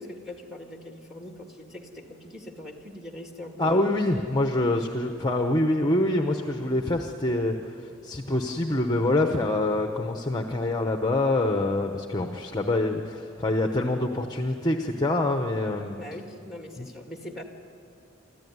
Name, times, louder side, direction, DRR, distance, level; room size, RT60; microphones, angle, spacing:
voice 1, 0.0-3.8 16.0-17.4, left 1 dB, ahead, 3 dB, 1.9 m, -42 dB
voice 2, 3.6-16.0 16.8-16.9, left 2 dB, 20° left, 4 dB, 0.9 m, -25 dB
25.5 x 14.5 x 9.5 m, 2.7 s
head